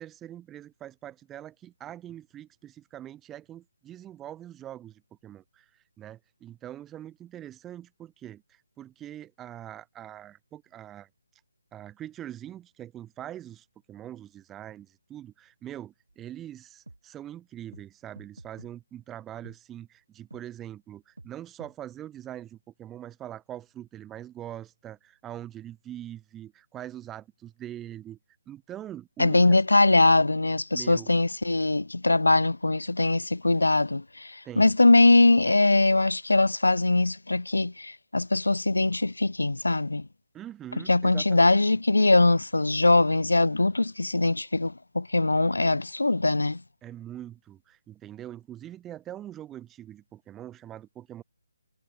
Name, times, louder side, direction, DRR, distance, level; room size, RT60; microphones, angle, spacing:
voice 1, 0.0-5.7 6.0-11.1 11.7-28.2 28.5-29.6 30.7-31.1 34.4-34.7 40.3-41.6 46.8-51.2, right 12 dB, 10° right, 1.8 m, -43 dB
sound 1, 16.1-16.2 16.9-17.0 17.7-17.9 18.2-18.7 19.4-19.6 20.3-20.4 21.2-21.3 21.6-21.7, right 2 dB, 75° right, 3.1 m, -47 dB
voice 2, 29.2-40.0 40.9-46.6, left 2 dB, 75° left, 0.8 m, -22 dB
figure-of-eight pair, 145°, 0 cm